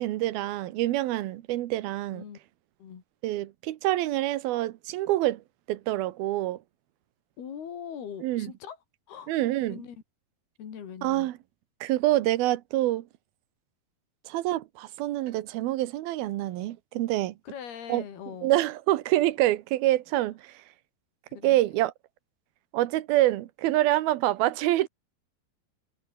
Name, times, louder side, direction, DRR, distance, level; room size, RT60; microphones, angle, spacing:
voice 1, 0.0-2.2 3.2-5.4 5.7-6.6 8.2-8.5 9.3-9.8 11.0-11.3 11.8-13.1 14.3-17.3 17.9-18.0 18.4-20.5 21.4-21.9 22.7-24.9, right 15 dB, 80° right, 2.9 m, -26 dB
voice 2, 2.1-2.4 2.8-3.0 7.4-8.8 9.1-9.3 9.7-10.0 10.6-11.3 17.4-18.6 21.3-21.6, left 8 dB, 80° left, 5.3 m, -41 dB
omnidirectional pair, 4.4 m